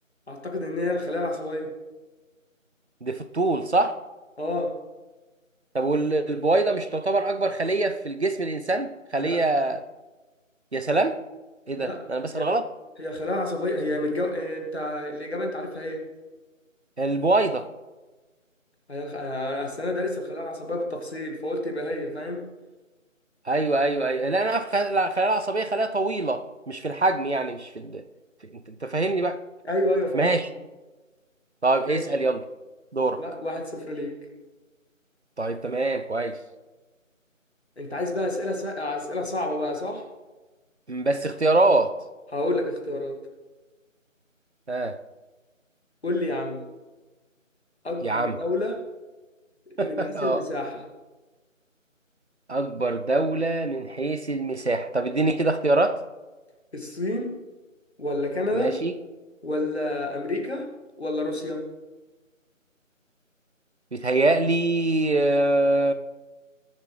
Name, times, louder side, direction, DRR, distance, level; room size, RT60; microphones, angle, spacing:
voice 1, 0.3-1.7 4.4-4.8 9.2-9.4 11.8-12.0 12.3-12.5 13.0-16.1 18.9-22.5 29.6-30.3 31.9-32.1 33.2-34.1 37.8-40.1 42.3-43.2 46.0-46.6 47.8-48.8 49.8-50.8 56.7-57.4 58.0-58.7 59.4-60.7 61.0-61.6, left 1 dB, 50° left, 2 dB, 2.1 m, -29 dB
voice 2, 3.0-4.0 5.7-9.8 10.7-11.2 11.7-12.6 17.0-17.6 23.5-28.0 28.7-29.4 30.1-30.5 31.6-32.4 32.9-33.2 35.4-36.4 40.9-41.9 44.7-45.0 48.0-48.4 49.8-50.4 52.5-56.0 58.5-58.9 63.9-65.9, right 2 dB, 55° right, 10 dB, 0.7 m, -24 dB
20.5 x 7.4 x 3.2 m, 1.2 s
figure-of-eight pair, 175°, 40 cm